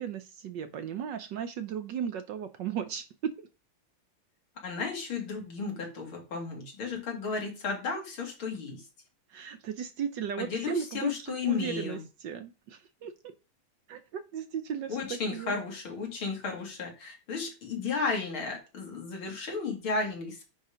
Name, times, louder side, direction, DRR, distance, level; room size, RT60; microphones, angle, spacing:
voice 1, 0.0-3.5 9.3-13.3 13.9-15.5, right 8 dB, 65° right, 9 dB, 1.3 m, -36 dB
voice 2, 4.6-8.9 10.4-12.0 14.9-20.4, left 4 dB, 70° left, 1 dB, 3.1 m, -33 dB
9.7 x 3.6 x 5.1 m, 0.31 s
omnidirectional pair, 2.4 m